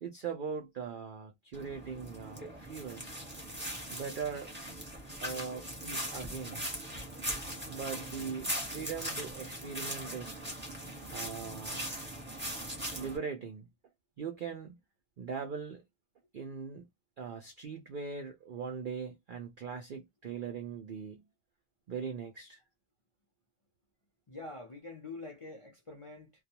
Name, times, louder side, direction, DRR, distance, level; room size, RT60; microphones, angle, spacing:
voice 1, 0.0-3.0 3.9-4.5 5.2-6.7 7.7-10.4 11.1-11.9 13.0-13.7 14.2-14.8 15.2-15.8 16.3-16.9 17.2-21.2 21.9-22.6, right 6 dB, 85° right, 0.4 m, -40 dB
sound 1, 1.5-13.2, equal, 10° right, 0.9 m, -40 dB
voice 2, 24.3-26.3, left 3 dB, 45° left, 0.4 m, -45 dB
2.3 x 2.2 x 2.8 m
omnidirectional pair, 1.5 m